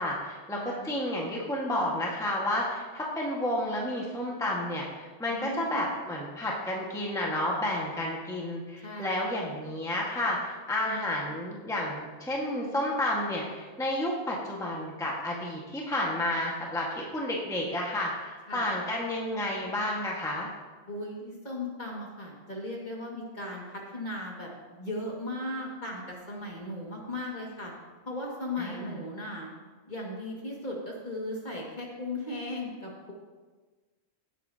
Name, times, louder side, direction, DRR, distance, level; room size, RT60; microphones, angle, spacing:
voice 1, 0.0-20.5 28.6-29.0, left 1 dB, 5° left, -3 dB, 1.4 m, -31 dB
voice 2, 0.6-0.9 5.3-5.9 8.8-9.2 18.5-18.7 20.9-27.7 28.1-29.5 29.9-33.1, left 1 dB, 35° left, -3 dB, 2.1 m, -37 dB
17.0 x 8.2 x 2.8 m, 1.3 s
omnidirectional pair, 1.4 m